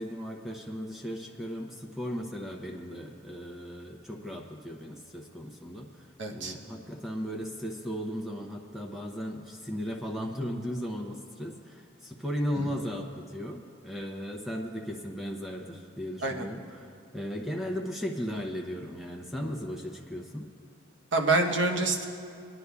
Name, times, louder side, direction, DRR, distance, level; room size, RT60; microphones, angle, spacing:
voice 1, 0.0-20.5, equal, ahead, 0 dB, 0.7 m, -36 dB
voice 2, 6.2-6.5 12.6-12.7 16.2-16.5 21.1-22.1, right 3 dB, 75° right, 2 dB, 1.0 m, -26 dB
26.5 x 9.6 x 2.3 m, 2.6 s
head